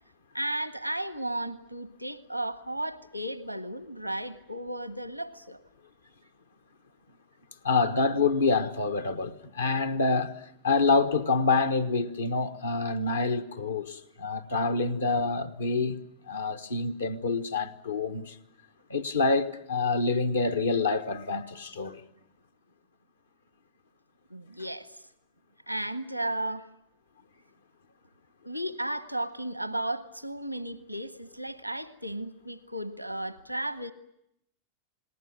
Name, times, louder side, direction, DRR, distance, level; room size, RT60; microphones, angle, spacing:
voice 1, 0.3-5.6 24.3-25.0 25.7-26.7 28.4-33.9, right 1 dB, 90° right, 1.1 m, -34 dB
voice 2, 7.6-16.0 16.3-18.4 18.9-22.0, left 3 dB, 75° left, 1.3 m, -27 dB
28.5 x 20.0 x 9.2 m
figure-of-eight pair, 90°, 0 cm